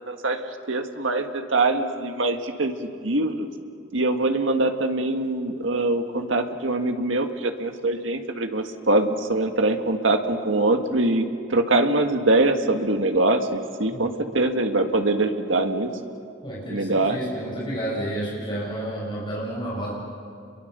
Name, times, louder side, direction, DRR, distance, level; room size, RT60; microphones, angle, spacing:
voice 1, 0.0-3.5 3.9-15.9 16.7-17.2, right 2 dB, 90° right, 5 dB, 1.7 m, -23 dB
voice 2, 16.4-19.9, right 1 dB, 25° left, -5 dB, 7.0 m, -30 dB
29.0 x 22.5 x 6.8 m, 2.5 s
head